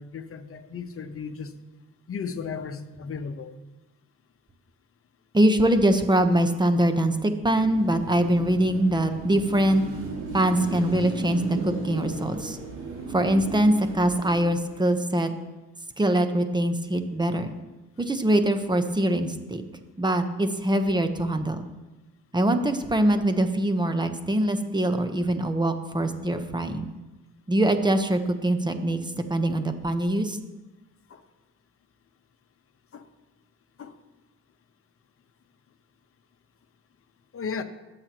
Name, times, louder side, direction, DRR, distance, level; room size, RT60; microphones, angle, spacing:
voice 1, 0.0-1.5 2.1-3.5 31.1-31.2 32.9-33.0 33.8-34.0 37.3-37.6, left 5 dB, 45° left, 7 dB, 1.1 m, -35 dB
voice 2, 5.3-9.8 10.3-12.6 13.1-15.3 16.0-17.5 18.0-19.7 20.0-21.7 22.3-26.9 27.5-29.0 29.3-30.4, right 1 dB, 15° right, 8 dB, 1.1 m, -23 dB
Car passing by / Traffic noise roadway noise / Engine, 7.5-14.9, right 2 dB, 80° right, 3.4 m, -36 dB
23.0 x 7.9 x 3.1 m, 1.1 s
cardioid pair, 80°, 30 cm